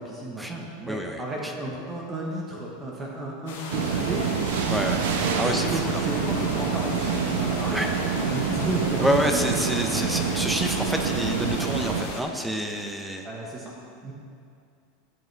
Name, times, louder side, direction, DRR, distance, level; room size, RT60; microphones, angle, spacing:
voice 1, 0.0-4.2 5.4-7.8 8.2-9.6 13.2-13.8 14.0-14.1, right 1 dB, 20° right, -3 dB, 1.2 m, -33 dB
voice 2, 0.9-1.5 4.7-5.1 5.4-6.0 7.7-7.9 9.0-13.3, equal, 5° right, 3 dB, 0.7 m, -28 dB
sound 1, 3.5-12.2, left 3 dB, 85° left, 1.7 m, -38 dB
sound 2, 3.7-12.0, right 6 dB, 85° right, 1.0 m, -27 dB
13.5 x 8.3 x 3.4 m, 2.3 s
supercardioid pair, 150°, 0 cm